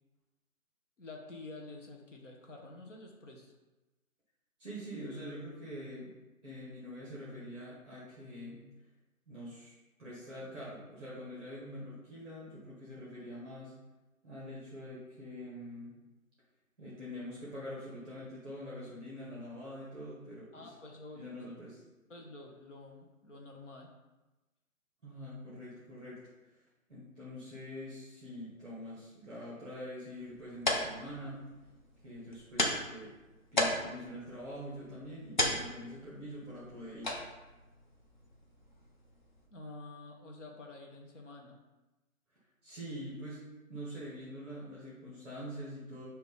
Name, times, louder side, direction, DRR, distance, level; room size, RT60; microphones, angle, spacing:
voice 1, 1.0-3.5 20.5-21.7 22.1-23.9 39.5-41.6, left 2 dB, 60° left, 0 dB, 1.2 m, -49 dB
voice 2, 4.6-6.1 6.4-8.6 9.3-9.7 10.0-13.7 14.2-16.0 16.8-20.7 21.1-21.8 25.0-26.2 26.9-31.5 32.0-33.1 33.5-37.2 42.6-43.4 43.7-46.1, equal, 5° right, -9 dB, 1.1 m, -45 dB
sound 1, 30.2-39.5, left 1 dB, 35° left, 0.7 m, -37 dB
6.0 x 3.0 x 5.2 m, 1.1 s
figure-of-eight pair, 160°, 42 cm